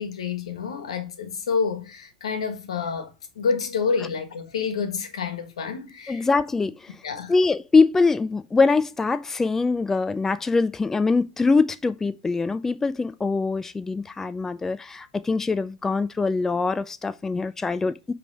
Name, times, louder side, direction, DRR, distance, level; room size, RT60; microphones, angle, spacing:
voice 1, 0.0-6.3 7.0-7.3, left 5 dB, 85° left, 1.4 m, -28 dB
voice 2, 6.1-6.9 7.3-18.1, left 4 dB, 15° left, 0.4 m, -23 dB
7.5 x 3.4 x 4.8 m
hypercardioid pair, 100°, 3 cm